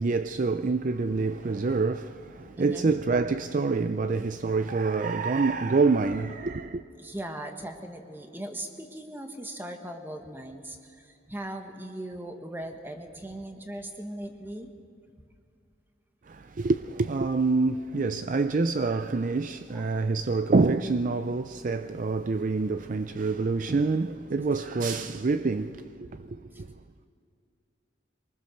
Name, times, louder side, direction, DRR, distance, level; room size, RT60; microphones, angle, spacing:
voice 1, 0.0-6.8 16.3-26.7, right 3 dB, 45° right, 0.4 m, -26 dB
voice 2, 2.6-2.9 4.5-4.6 7.0-14.7 19.7-20.1 26.5-26.6, right 1 dB, 10° right, 1.4 m, -39 dB
24.0 x 20.0 x 6.5 m
head